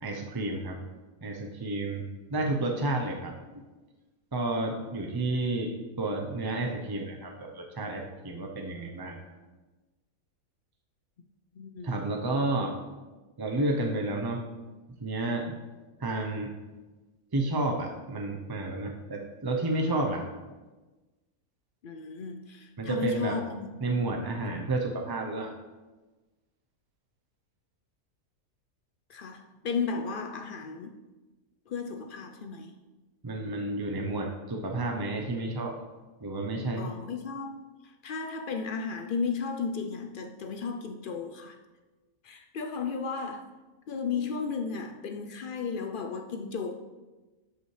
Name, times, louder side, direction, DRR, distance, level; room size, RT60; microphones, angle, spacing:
voice 1, 0.0-0.8 1.2-3.3 4.3-9.3 11.8-12.8 13.4-14.4 15.0-15.6 16.0-16.5 17.3-20.3 22.8-23.4 23.8-25.5 33.2-35.7 36.2-36.9, right 2 dB, 30° right, 1 dB, 0.4 m, -31 dB
voice 2, 11.6-12.1 21.8-23.8 29.1-31.0 31.7-32.8 36.8-41.6 42.2-43.5 43.9-46.7, left 5 dB, 80° left, 5 dB, 0.4 m, -34 dB
12.5 x 5.4 x 3.2 m, 1.2 s
omnidirectional pair, 1.5 m